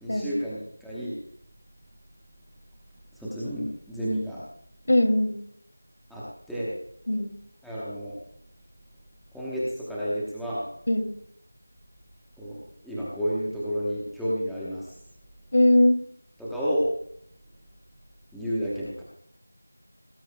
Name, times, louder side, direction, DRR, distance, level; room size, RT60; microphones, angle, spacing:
voice 1, 0.0-1.2 3.1-4.4 6.1-6.7 7.6-8.2 9.3-10.7 12.4-14.9 16.4-16.9 18.3-19.0, equal, ahead, -11 dB, 1.0 m, -31 dB
voice 2, 4.9-5.4 7.1-7.3 10.9-11.1 15.5-16.0, left 1 dB, 55° left, 7 dB, 2.5 m, -20 dB
18.5 x 17.5 x 2.2 m, 0.65 s
figure-of-eight pair, 180°, 0 cm